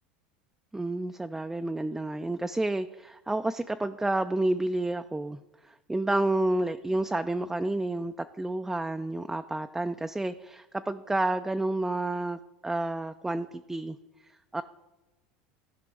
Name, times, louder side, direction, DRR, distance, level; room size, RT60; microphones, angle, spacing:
voice 1, 0.7-14.0 14.2-14.6, right 2 dB, 10° right, 8 dB, 0.3 m, -30 dB
15.0 x 5.1 x 3.3 m, 1.1 s
hypercardioid pair, 95°, 5 cm